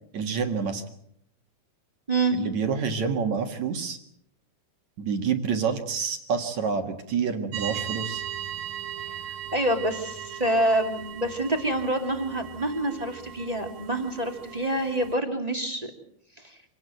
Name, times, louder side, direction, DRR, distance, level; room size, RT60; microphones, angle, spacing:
voice 1, 0.1-0.8 2.3-4.0 5.0-8.2, right 6 dB, 50° right, 6 dB, 2.6 m, -28 dB
sound 1, 7.5-15.2, right 10 dB, 80° right, 1.7 m, -38 dB
voice 2, 9.1-15.9 16.4-16.6, right 1 dB, 15° right, 4 dB, 1.8 m, -27 dB
26.5 x 18.5 x 7.9 m, 0.71 s
omnidirectional pair, 4.9 m